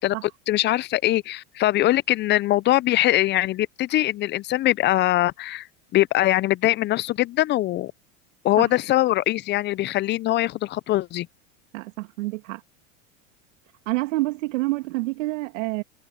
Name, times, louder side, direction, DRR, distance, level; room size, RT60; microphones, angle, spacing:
voice 1, 0.0-5.7 5.9-7.9 8.4-11.3, left 15 dB, 30° left, 0.4 m, -22 dB
voice 2, 11.7-12.6 13.9-15.8, right 21 dB, 75° right, 2.6 m, -27 dB
hypercardioid pair, 105°, 39 cm